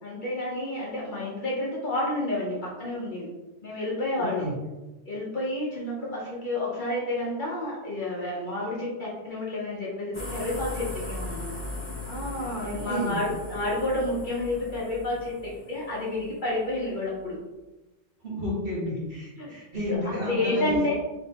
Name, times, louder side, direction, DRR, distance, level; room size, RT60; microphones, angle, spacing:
voice 1, 0.0-3.3 3.6-4.5 5.1-11.5 12.0-17.4 19.4-19.5 19.9-20.9, left 1 dB, 50° left, -5 dB, 0.8 m, -30 dB
sound 1, 10.1-17.0, left 1 dB, 15° left, 0.6 m, -38 dB
voice 2, 12.9-13.2 18.2-20.8, left 1 dB, 55° right, -7 dB, 1.4 m, -31 dB
3.7 x 3.2 x 2.8 m, 1.1 s
omnidirectional pair, 1.2 m